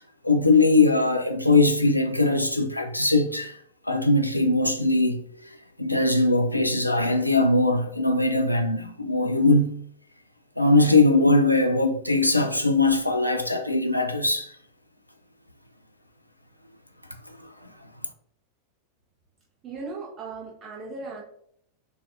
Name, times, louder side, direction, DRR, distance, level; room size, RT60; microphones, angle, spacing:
voice 1, 0.2-3.5 3.9-5.5 5.8-9.7 10.6-14.5, left 2 dB, 90° left, 0.4 m, -21 dB
voice 2, 19.6-21.2, right 3 dB, 30° right, 1.1 m, -37 dB
6.8 x 2.6 x 2.6 m
figure-of-eight pair, 90°, 0 cm